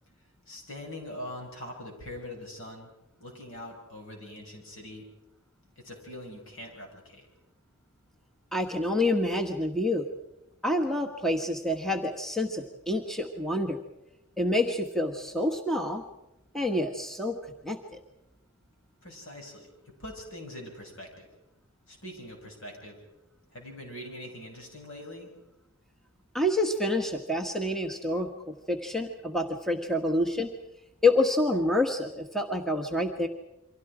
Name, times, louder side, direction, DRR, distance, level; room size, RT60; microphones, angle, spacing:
voice 1, 0.5-2.9 3.2-5.1 5.8-7.3 19.0-19.7 20.0-21.3 21.9-23.0 23.5-25.3, left 1 dB, 65° left, 2 dB, 6.5 m, -43 dB
voice 2, 8.5-10.0 10.6-13.8 14.4-16.0 16.5-18.0 26.3-30.5 31.0-33.3, left 1 dB, ahead, 2 dB, 1.4 m, -28 dB
29.0 x 24.5 x 5.0 m, 0.86 s
head